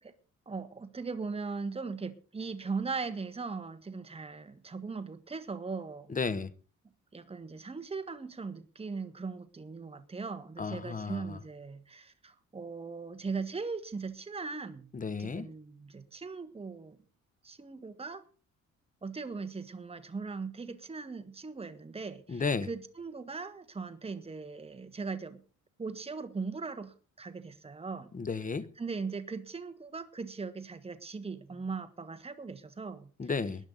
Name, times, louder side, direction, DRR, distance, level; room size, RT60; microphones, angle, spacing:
voice 1, 0.5-6.1 7.1-14.9 15.2-17.0 17.4-18.2 19.0-25.4 25.8-28.1 28.8-33.1, right 4 dB, 20° right, 1.5 m, -39 dB
voice 2, 6.1-6.5 10.6-11.4 14.9-15.5 22.3-22.7 28.1-28.7 33.2-33.6, left 4 dB, 25° left, 1.0 m, -33 dB
19.5 x 11.0 x 4.0 m
cardioid pair, 90°, 30 cm